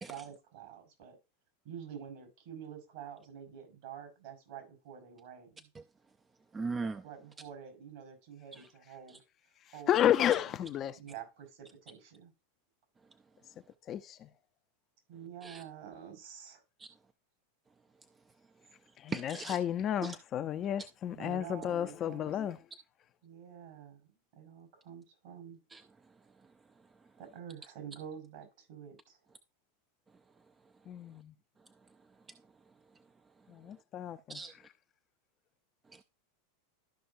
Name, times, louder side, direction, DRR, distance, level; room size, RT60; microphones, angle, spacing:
voice 1, 0.1-1.2 1.6-5.7 7.0-9.2 9.7-10.1 10.4-12.3 15.1-16.6 21.1-22.4 23.2-25.6 27.2-29.2, right 8 dB, 65° right, 5.2 m, -48 dB
voice 2, 6.5-7.0 8.5-8.7 15.4-15.6 16.8-16.9 19.1-19.6 20.0-20.2 25.7-25.8 34.3-34.5 35.9-36.0, right 4 dB, 20° right, 0.5 m, -38 dB
voice 3, 9.9-11.0 13.9-14.3 19.0-22.6 30.9-31.3 33.5-34.4, left 10 dB, 35° left, 0.6 m, -32 dB
13.0 x 5.5 x 2.7 m
hypercardioid pair, 105°, 0 cm